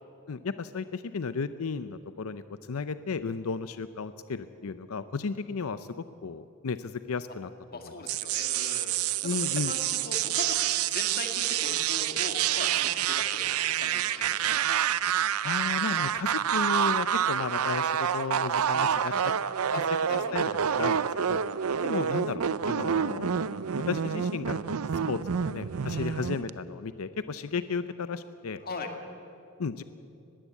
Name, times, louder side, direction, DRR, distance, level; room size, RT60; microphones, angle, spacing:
voice 1, 0.3-7.5 9.2-9.7 15.4-19.4 20.3-20.5 20.8-21.4 21.8-23.5 23.8-24.6 25.1-25.2 25.5-28.6 29.6-29.8, left 5 dB, 80° left, 13 dB, 0.6 m, -34 dB
voice 2, 7.7-8.9 9.2-13.5 13.8-14.4 19.0-19.4 19.7-19.8 20.1-20.3 25.8-26.2 28.6-28.9, left 3 dB, 45° left, 4 dB, 2.1 m, -40 dB
sound 1, 8.1-26.5, right 9 dB, 85° right, 0.5 m, -28 dB
20.5 x 15.5 x 8.4 m, 2.6 s
head